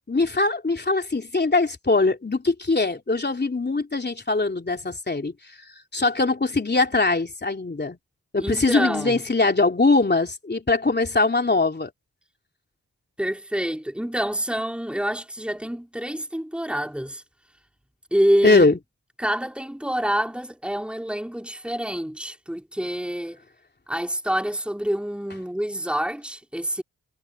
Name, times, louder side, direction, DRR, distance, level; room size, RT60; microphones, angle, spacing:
voice 1, 0.1-5.3 5.9-8.0 8.3-11.9 18.4-18.8, left 3 dB, 30° left, 3.3 m, -21 dB
voice 2, 8.4-9.2 13.2-17.2 18.1-18.8 19.2-23.4 23.9-26.8, equal, 5° right, 4.3 m, -27 dB
cardioid pair, 55°, 31 cm